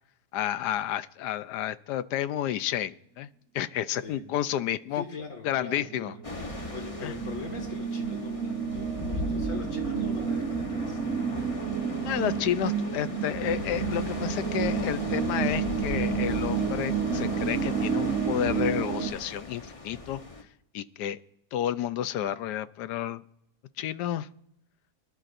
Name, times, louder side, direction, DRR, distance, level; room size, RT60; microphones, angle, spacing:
voice 1, 0.3-3.3 3.5-5.0 5.4-6.1 7.0-7.1 12.0-20.2 20.7-21.2 21.5-23.2 23.8-24.3, left 11 dB, 85° left, 14 dB, 1.2 m, -31 dB
voice 2, 3.9-4.2 4.9-6.2 6.7-11.5, left 2 dB, 55° left, 3 dB, 2.2 m, -41 dB
sound 1, 5.6-19.1, right 6 dB, 55° right, 1.1 m, -31 dB
sound 2, 6.2-20.4, left 2 dB, 25° left, 1.0 m, -37 dB
23.5 x 12.0 x 2.6 m, 0.76 s
omnidirectional pair, 1.7 m